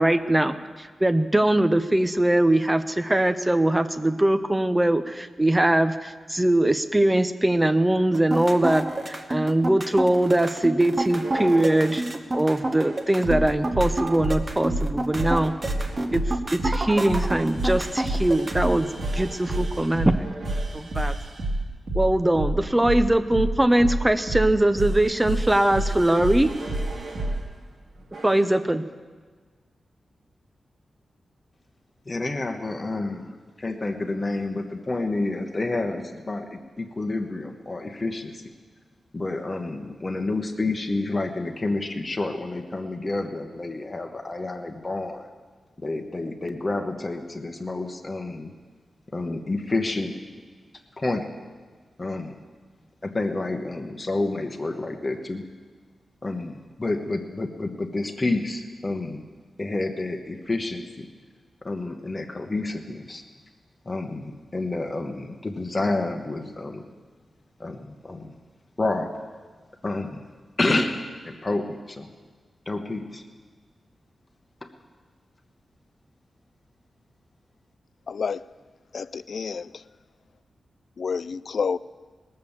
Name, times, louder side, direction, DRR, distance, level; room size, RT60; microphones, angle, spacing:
voice 1, 0.0-12.0 12.3-15.5 16.1-16.2 16.5-18.9 19.1-20.3 20.7-21.1 21.9-26.5 28.2-28.8, right 1 dB, 10° right, 11 dB, 0.5 m, -21 dB
sound 1, 8.1-18.7, right 2 dB, 30° right, 0.9 m, -29 dB
sound 2, 11.1-12.1 12.8-27.4 28.1-28.5, right 1 dB, 65° right, 1.8 m, -29 dB
voice 2, 32.1-38.4 39.1-45.3 45.8-48.5 49.1-50.1 51.0-51.3 52.0-52.3 53.0-55.4 56.2-59.2 59.6-61.1 61.6-63.2 63.8-66.9 67.6-68.3 68.8-69.1 69.8-70.2 70.6-71.0 71.2-72.1 72.7-73.2, left 2 dB, 25° left, 3 dB, 0.9 m, -29 dB
voice 3, 78.1-78.5 78.9-79.8 81.0-81.8, left 5 dB, 60° left, 17 dB, 0.3 m, -29 dB
20.0 x 6.7 x 7.1 m, 1.5 s
wide cardioid pair, 140°, 0 cm